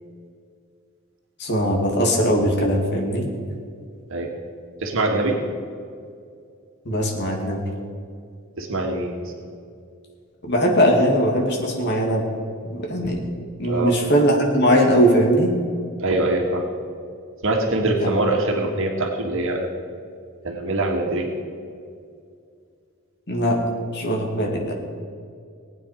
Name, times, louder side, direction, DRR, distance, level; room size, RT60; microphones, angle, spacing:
voice 1, 1.4-3.3 6.9-7.6 10.4-12.3 12.7-13.2 13.6-15.5 23.3-23.6 23.9-24.7, equal, 55° left, 0 dB, 2.6 m, -20 dB
voice 2, 4.8-5.4 8.6-9.2 13.6-14.0 16.0-16.6 17.4-19.7 20.4-21.3, right 2 dB, 65° right, 1 dB, 1.9 m, -23 dB
19.5 x 9.1 x 5.2 m, 2.3 s
head